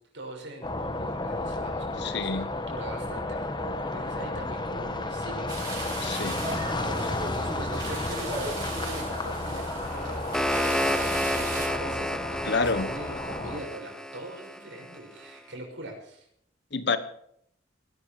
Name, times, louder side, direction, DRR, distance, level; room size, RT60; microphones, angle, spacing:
voice 1, 0.1-10.2 11.3-16.3, right 1 dB, 80° right, 6.3 m, -42 dB
sound 1, 0.6-13.6, left 2 dB, 25° left, 1.3 m, -32 dB
voice 2, 2.0-2.4 6.0-6.3 12.4-12.9 16.7-17.0, left 4 dB, 65° left, 1.3 m, -27 dB
sound 2, 5.5-11.7, right 3 dB, 25° right, 6.9 m, -37 dB
sound 3, 9.9-15.0, equal, 5° left, 0.7 m, -31 dB
20.0 x 12.5 x 5.0 m
head